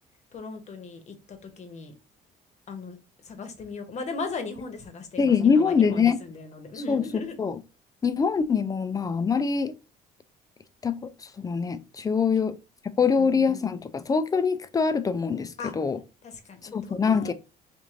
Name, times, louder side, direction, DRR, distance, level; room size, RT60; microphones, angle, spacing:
voice 1, 0.3-1.9 2.7-3.0 3.2-7.4 12.3-12.4 13.0-13.5 15.6-15.7 16.2-17.3, left 4 dB, 40° left, 0.9 m, -38 dB
voice 2, 5.2-6.2 6.9-7.6 8.0-9.7 10.8-11.0 11.4-12.5 13.0-16.0 16.7-17.3, left 6 dB, 20° left, 0.4 m, -24 dB
3.0 x 2.6 x 3.6 m
cardioid pair, 110°, 17 cm